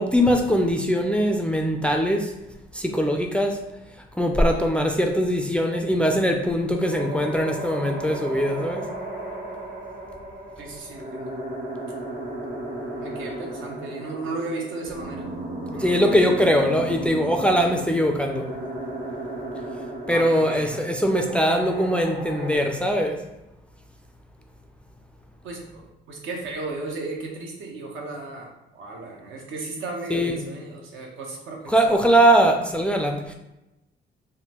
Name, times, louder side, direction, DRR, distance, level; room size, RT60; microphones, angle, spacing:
voice 1, 0.0-2.3 2.7-3.6 4.2-8.9 15.8-18.5 20.1-23.2 30.1-30.4 31.7-33.3, equal, 5° left, 3 dB, 0.3 m, -21 dB
sound 1, 6.8-22.6, right 1 dB, 45° right, 1.2 m, -35 dB
voice 2, 10.6-11.3 13.0-15.3 15.7-16.2 20.1-20.8 25.4-31.9, right 3 dB, 75° right, 0 dB, 0.8 m, -35 dB
3.5 x 2.1 x 2.9 m, 0.94 s
cardioid pair, 90°, 20 cm